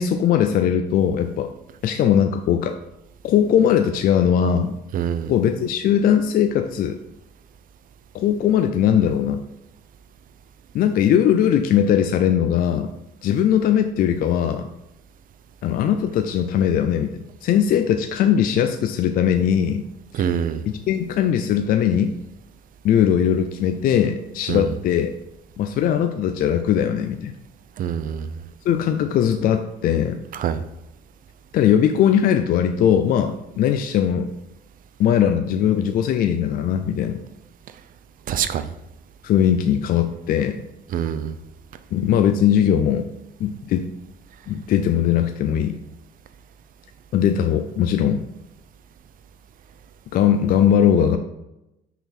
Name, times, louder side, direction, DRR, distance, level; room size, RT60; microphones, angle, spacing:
voice 1, 0.0-1.5 1.8-2.7 3.2-4.7 5.3-7.0 8.1-9.4 10.7-12.9 13.2-14.7 15.6-19.9 20.1-20.2 20.7-22.1 22.8-25.1 25.6-27.3 28.6-30.2 31.5-34.3 35.0-37.2 39.2-40.6 41.9-43.1 43.4-43.9 44.5-45.8 47.1-48.2 50.1-51.2, left 9 dB, 60° left, 6 dB, 0.5 m, -20 dB
voice 2, 4.9-5.3 20.1-20.6 24.5-24.6 27.8-28.3 30.4-30.6 38.3-38.7 40.9-41.3, right 9 dB, 55° right, 11 dB, 0.5 m, -24 dB
5.8 x 3.8 x 4.3 m, 0.90 s
cardioid pair, 110°, 17 cm